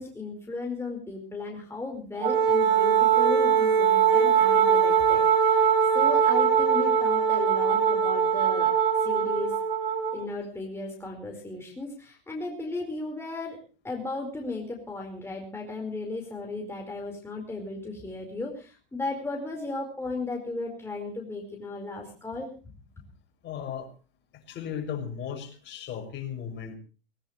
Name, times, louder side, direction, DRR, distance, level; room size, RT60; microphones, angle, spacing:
voice 1, 0.0-5.6 5.9-8.7 9.0-9.5 10.1-13.6 13.8-22.5, left 3 dB, 10° left, 1 dB, 4.8 m, -35 dB
Wind instrument woodwind instrument, 2.2-10.2, right 7 dB, 80° right, 3.6 m, -22 dB
voice 2, 23.4-23.9 24.3-26.8, left 8 dB, 40° left, 4 dB, 6.4 m, -36 dB
20.0 x 19.5 x 3.2 m, 0.36 s
hypercardioid pair, 105°, 29 cm